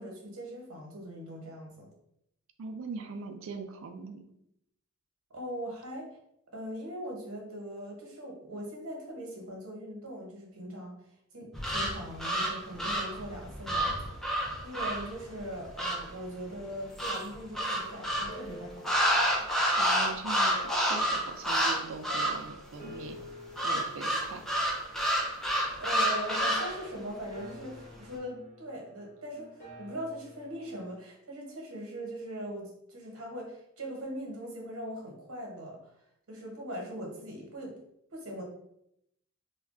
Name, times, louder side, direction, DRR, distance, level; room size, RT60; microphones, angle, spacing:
voice 1, 0.0-1.9 5.3-6.1 6.5-11.0 11.3-18.9 25.8-35.8 36.3-37.7 38.1-38.4, equal, 90° right, 0 dB, 0.9 m, -41 dB
voice 2, 2.6-4.2 19.8-23.2 23.6-24.4, right 4 dB, 65° right, 6 dB, 0.4 m, -41 dB
sound 1, 11.5-16.1 17.0-18.4 18.8-21.8 22.0-22.5 23.6-26.8, equal, ahead, 0.4 m, -29 dB
sound 2, 17.6-31.0, left 1 dB, 35° left, 0.9 m, -50 dB
2.3 x 2.2 x 3.6 m, 0.77 s
head